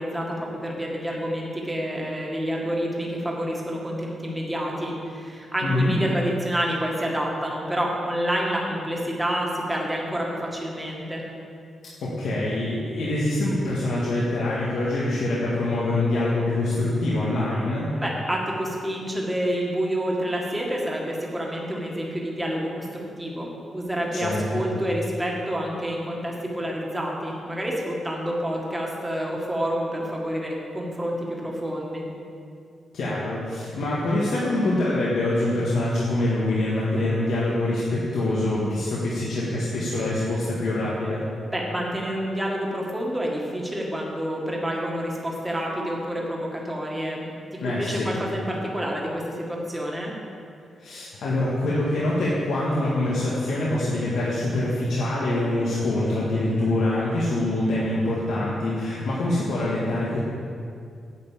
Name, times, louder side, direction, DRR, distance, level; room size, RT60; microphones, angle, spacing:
voice 1, 0.0-11.2 18.0-32.0 41.5-47.3 47.6-50.1, equal, 10° right, -2 dB, 1.8 m, -28 dB
voice 2, 5.6-5.9 12.0-17.9 24.2-24.7 32.9-41.2 47.6-48.1 50.8-60.2, left 1 dB, 80° left, -7 dB, 1.7 m, -25 dB
9.4 x 5.8 x 8.3 m, 2.4 s
wide cardioid pair, 140°, 0 cm